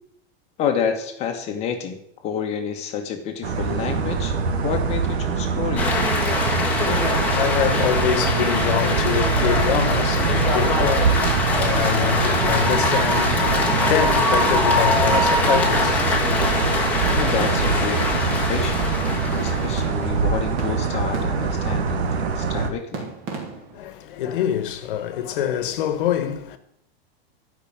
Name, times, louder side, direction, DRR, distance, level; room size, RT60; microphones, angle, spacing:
voice 1, 0.6-4.4 4.6-6.0 17.1-23.1, left 7 dB, 20° left, 1.5 m, -29 dB
sound 1, 3.4-22.7, right 5 dB, 90° right, 2.0 m, -24 dB
sound 2, 5.8-20.0, left 2 dB, 5° left, 1.6 m, -23 dB
voice 2, 6.6-16.4 23.7-26.6, left 10 dB, 55° left, 1.5 m, -25 dB
sound 3, 13.4-16.1 16.4-20.3 20.6-21.7 22.9-23.9, right 4 dB, 30° right, 2.6 m, -35 dB
12.5 x 5.9 x 8.7 m
supercardioid pair, 175°, 32 cm